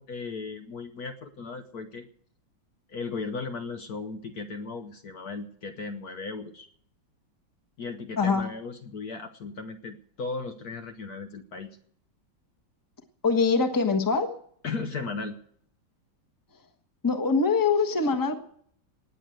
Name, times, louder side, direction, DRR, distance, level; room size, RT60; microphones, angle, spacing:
voice 1, 0.0-2.1 2.9-6.7 7.8-11.7 14.6-15.4, left 4 dB, 60° left, 6 dB, 1.3 m, -36 dB
voice 2, 13.2-14.3 17.0-18.4, left 4 dB, 10° left, 6 dB, 1.1 m, -23 dB
19.0 x 7.7 x 7.9 m, 0.63 s
omnidirectional pair, 2.1 m